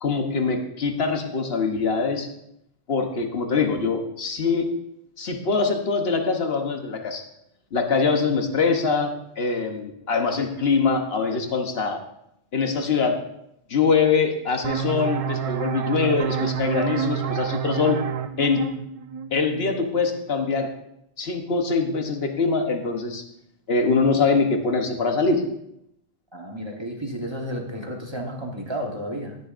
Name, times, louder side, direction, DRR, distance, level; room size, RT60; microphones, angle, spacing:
voice 1, 0.0-2.3 2.9-4.7 5.2-7.2 7.7-12.0 12.5-13.2 13.7-18.0 18.4-18.7 19.3-20.7 21.2-23.2 23.7-25.4, left 4 dB, 65° left, 5 dB, 1.2 m, -23 dB
sound 1, 14.6-20.0, right 8 dB, 55° right, 0.4 m, -28 dB
voice 2, 26.3-29.4, equal, 25° right, 1 dB, 1.2 m, -32 dB
19.0 x 6.9 x 2.5 m, 0.77 s
omnidirectional pair, 1.1 m